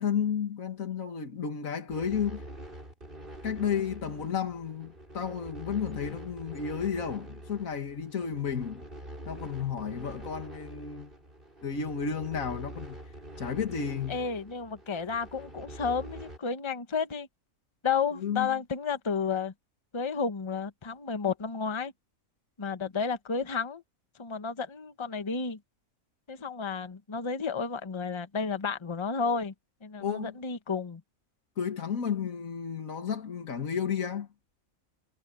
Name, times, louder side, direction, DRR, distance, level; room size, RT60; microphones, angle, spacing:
voice 1, 0.0-2.4 3.4-8.8 9.3-11.1 11.6-14.2 18.2-18.6 30.0-30.4 31.6-34.3, left 7 dB, 75° left, 2.1 m, -32 dB
sound 1, 1.9-16.4, right 1 dB, 40° right, 7.7 m, -45 dB
voice 2, 14.1-17.3 17.8-19.5 19.9-21.9 22.6-23.8 24.2-25.6 26.3-29.5 29.8-31.0, left 5 dB, 25° left, 1.0 m, -32 dB
omnidirectional pair, 1.4 m